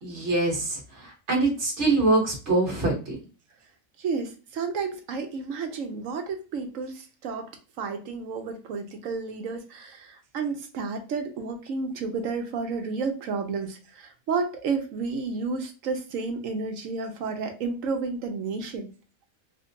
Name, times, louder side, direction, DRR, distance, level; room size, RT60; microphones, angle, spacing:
voice 1, 0.0-3.1, right 2 dB, 55° right, 0 dB, 1.6 m, -24 dB
voice 2, 4.0-7.5 7.8-18.9, right 4 dB, 70° right, 6 dB, 1.0 m, -31 dB
4.8 x 2.1 x 2.6 m, 0.34 s
omnidirectional pair, 1.5 m